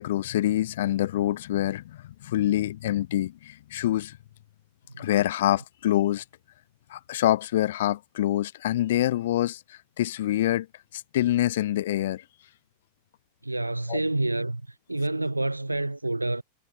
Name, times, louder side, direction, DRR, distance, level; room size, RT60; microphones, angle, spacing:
voice 1, 0.0-4.2 5.0-6.2 6.9-10.7 10.9-12.2 13.9-14.0, left 13 dB, 55° left, 3.5 m, -26 dB
voice 2, 13.4-16.4, right 2 dB, 85° right, 3.8 m, -28 dB
figure-of-eight pair, 90°, 0 cm